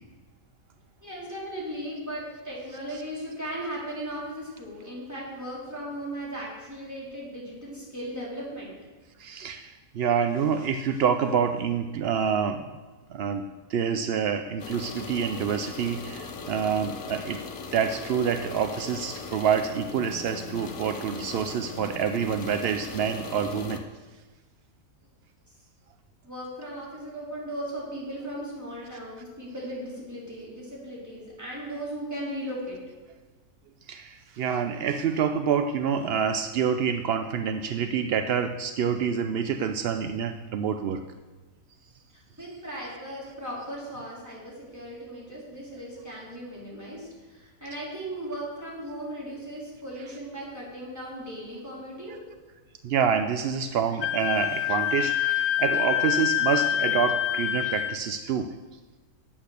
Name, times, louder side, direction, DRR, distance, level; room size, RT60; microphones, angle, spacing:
voice 1, 1.0-8.8 26.2-32.8 42.1-52.2, right 1 dB, 10° right, -6 dB, 3.9 m, -37 dB
voice 2, 9.2-12.7 13.1-13.4 13.7-17.4 17.7-23.8 33.9-41.0 52.8-58.5, right 7 dB, 70° right, 8 dB, 0.6 m, -27 dB
sound 1, 14.6-23.8, left 5 dB, 65° left, 1.3 m, -39 dB
Wind instrument woodwind instrument, 54.0-58.0, left 13 dB, 80° left, 1.1 m, -26 dB
10.0 x 8.4 x 6.7 m, 1.3 s
omnidirectional pair, 1.6 m